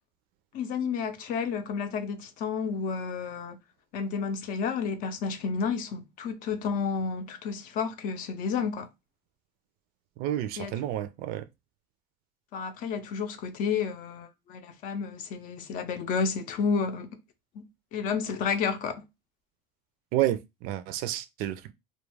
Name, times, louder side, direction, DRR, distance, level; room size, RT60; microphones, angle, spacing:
voice 1, 0.5-3.6 3.9-8.9 10.6-10.7 12.5-17.1 17.5-17.6 17.9-19.0, left 5 dB, 55° left, 0.5 m, -31 dB
voice 2, 10.2-11.4 20.1-21.7, right 13 dB, 65° right, 0.4 m, -30 dB
2.4 x 2.2 x 3.1 m
cardioid pair, 130°, 16 cm